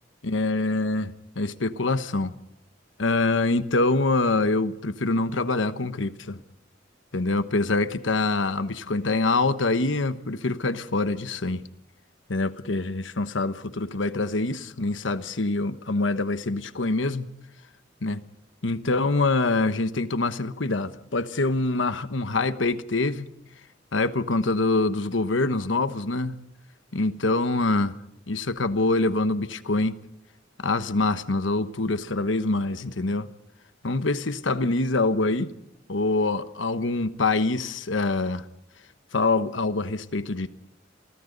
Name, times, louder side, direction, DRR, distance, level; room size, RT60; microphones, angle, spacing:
voice 1, 0.2-2.3 3.0-6.4 7.1-11.6 12.3-17.3 18.0-18.2 18.6-23.3 23.9-26.4 26.9-28.0 28.3-30.0 30.6-33.3 33.8-35.5 35.9-38.5 39.1-40.5, left 2 dB, 85° left, 1.2 m, -25 dB
30.0 x 23.5 x 4.0 m
head